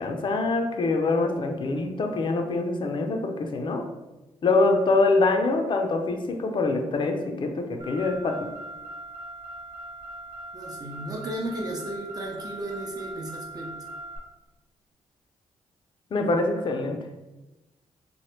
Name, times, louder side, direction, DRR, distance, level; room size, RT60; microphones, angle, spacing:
voice 1, 0.0-3.8 4.4-8.3 16.1-17.0, left 3 dB, 45° left, 4 dB, 0.4 m, -24 dB
Car, 7.8-14.2, right 1 dB, 75° right, 1.0 m, -40 dB
voice 2, 10.5-13.7, right 1 dB, 35° right, -2 dB, 0.5 m, -34 dB
3.0 x 2.1 x 3.1 m, 1.1 s
cardioid pair, 75°, 12 cm